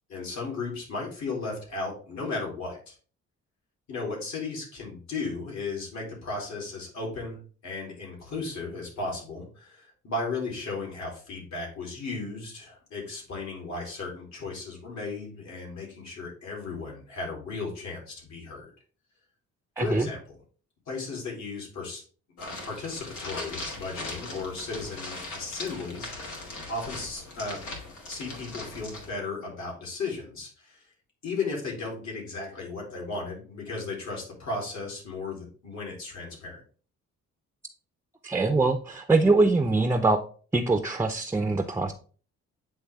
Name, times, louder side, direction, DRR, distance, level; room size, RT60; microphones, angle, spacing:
voice 1, 0.1-2.9 3.9-7.4 7.6-18.7 19.8-20.4 20.9-22.0 22.4-27.6 28.1-30.8 31.2-36.6, left 3 dB, 65° left, -2 dB, 3.0 m, -35 dB
voice 2, 19.8-20.1 38.2-40.2 40.5-41.9, right 3 dB, 10° right, 7 dB, 0.5 m, -23 dB
sound 1, 22.4-29.1, left 2 dB, 90° left, 2.2 m, -39 dB
9.3 x 3.2 x 3.4 m, 0.41 s
cardioid pair, 90°, 30 cm